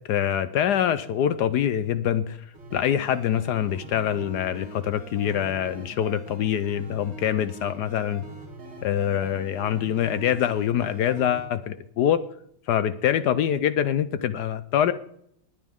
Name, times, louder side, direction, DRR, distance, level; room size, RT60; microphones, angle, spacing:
voice 1, 0.1-2.4 2.7-8.2 8.8-12.2 12.7-14.9, left 10 dB, 75° left, 13 dB, 1.0 m, -24 dB
sound 1, 2.5-11.5, right 1 dB, 30° right, 3.8 m, -42 dB
19.5 x 8.4 x 3.6 m, 0.69 s
omnidirectional pair, 2.2 m